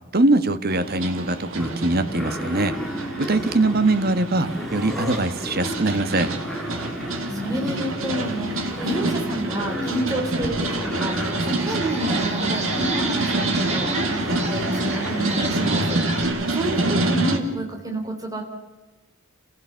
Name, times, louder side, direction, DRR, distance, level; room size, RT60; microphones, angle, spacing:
voice 1, 0.1-2.7 3.2-6.3, right 2 dB, 50° right, 10 dB, 1.4 m, -22 dB
sound 1, 0.7-17.4, right 2 dB, 85° right, 2.4 m, -27 dB
sound 2, 1.6-16.9, equal, ahead, 2.7 m, -33 dB
voice 2, 7.3-18.4, right 1 dB, 20° right, 2 dB, 4.0 m, -29 dB
sound 3, 10.4-10.5 10.9-16.2, right 3 dB, 35° right, 3.8 m, -32 dB
29.0 x 16.0 x 7.0 m, 1.2 s
head